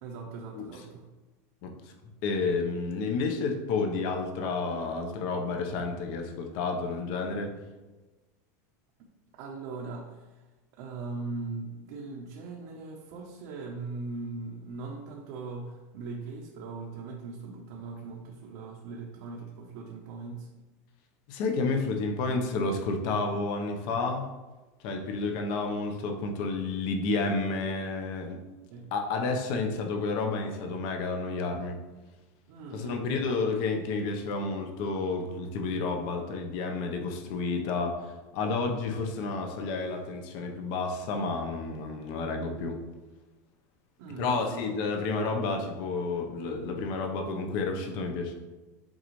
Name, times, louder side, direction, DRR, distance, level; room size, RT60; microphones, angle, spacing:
voice 1, 0.0-1.1 9.3-10.4 10.7-20.5 28.7-28.9 32.5-33.5 44.0-44.6, right 3 dB, 60° right, -1 dB, 0.9 m, -40 dB
voice 2, 2.2-7.5 21.3-24.3 24.8-28.4 28.9-31.8 32.7-38.0 38.3-42.8 44.2-48.3, left 3 dB, 50° left, 3 dB, 1.0 m, -30 dB
7.8 x 4.0 x 3.2 m, 1.1 s
supercardioid pair, 150°, 9 cm